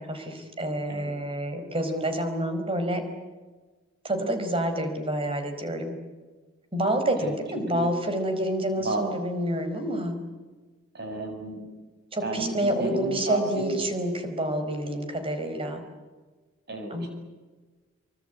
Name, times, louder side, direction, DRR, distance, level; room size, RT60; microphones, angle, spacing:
voice 1, 0.0-3.0 4.0-6.0 6.7-10.2 12.1-15.8 16.9-17.1, right 1 dB, 25° right, 7 dB, 4.7 m, -28 dB
voice 2, 7.2-7.9 8.8-9.1 10.9-11.6 12.2-13.8 16.7-17.1, right 2 dB, 50° right, 4 dB, 7.7 m, -32 dB
25.5 x 24.0 x 9.4 m, 1.3 s
head